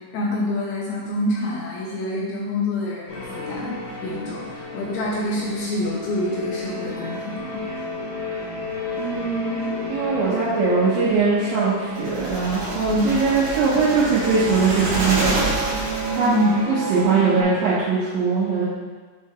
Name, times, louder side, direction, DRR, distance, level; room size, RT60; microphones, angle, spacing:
voice 1, 0.0-7.6 12.9-13.1 16.2-16.6, left 1 dB, 80° left, -4 dB, 2.4 m, -26 dB
sound 1, 3.1-17.4, equal, 50° left, 1.9 m, -31 dB
voice 2, 8.9-15.4 16.1-16.3 16.7-18.7, right 4 dB, 75° right, -9 dB, 3.1 m, -21 dB
sound 2, 11.9-16.5, right 1 dB, 50° right, 2.7 m, -28 dB
8.4 x 3.9 x 3.2 m, 1.4 s
omnidirectional pair, 5.5 m